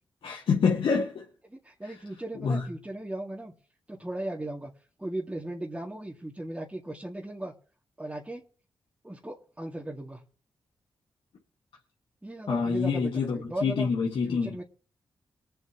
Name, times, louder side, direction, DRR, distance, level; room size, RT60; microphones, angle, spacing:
voice 1, 0.2-1.2 2.4-2.6 12.5-14.5, left 5 dB, 75° left, 2.0 m, -26 dB
voice 2, 1.5-3.5 3.9-4.7 5.0-7.5 8.0-8.4 9.0-10.2 12.2-13.9 14.3-14.6, right 1 dB, 15° right, 2.2 m, -37 dB
23.5 x 7.9 x 3.1 m
cardioid pair, 55°, 9 cm